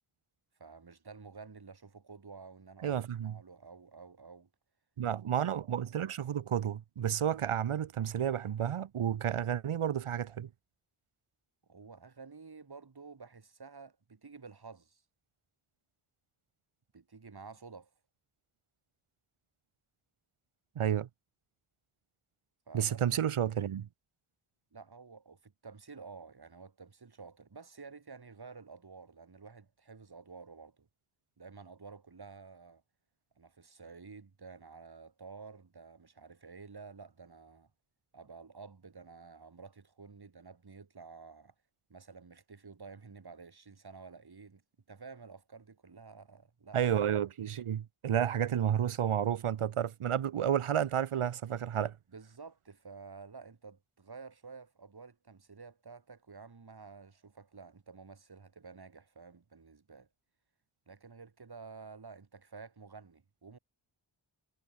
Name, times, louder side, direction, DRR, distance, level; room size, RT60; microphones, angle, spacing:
voice 1, 0.6-4.5 11.6-15.0 16.9-17.9 22.7-23.0 24.7-30.9 31.4-32.8 33.4-37.7 38.1-41.5 41.9-44.6 44.9-46.8 52.1-60.1 60.9-63.6, right 4 dB, 50° right, 3.5 m, -51 dB
voice 2, 2.8-3.4 5.0-10.5 20.8-21.1 22.7-23.9 46.7-51.9, right 9 dB, 90° right, 1.0 m, -31 dB
wide cardioid pair, 95°, 49 cm